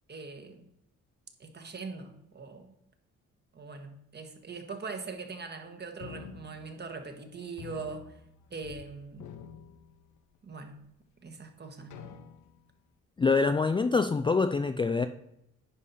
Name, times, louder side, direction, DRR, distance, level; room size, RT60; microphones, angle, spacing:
voice 1, 0.1-0.7 1.4-2.7 3.5-8.2 8.5-9.3 10.4-10.8 11.2-12.1, right 4 dB, 35° right, 1.5 m, -42 dB
sound 1, 6.0-7.2 7.6-8.9 9.1-10.5 11.0-11.1 11.9-12.7, left 7 dB, 75° left, 0.8 m, -48 dB
voice 2, 13.2-15.1, left 4 dB, 15° left, 0.4 m, -25 dB
9.9 x 5.4 x 4.2 m
cardioid pair, 90°, 30 cm